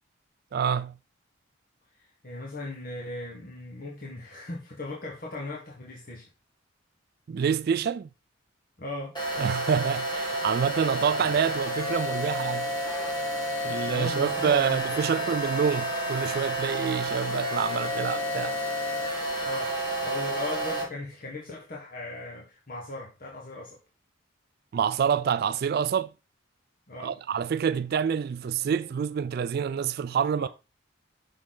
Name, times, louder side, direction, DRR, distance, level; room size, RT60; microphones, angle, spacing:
voice 1, 0.5-1.0 7.3-8.1 9.4-12.7 13.6-18.6 24.7-26.1 27.0-30.5, right 7 dB, 55° right, 0.3 m, -27 dB
voice 2, 1.9-6.3 8.8-9.2 11.2-11.3 13.7-15.2 19.4-23.8 26.9-27.1 30.4-30.5, left 2 dB, 45° left, 1.4 m, -38 dB
sound 1, 9.1-20.8, right 1 dB, 25° left, 2.9 m, -30 dB
6.5 x 6.0 x 3.9 m
head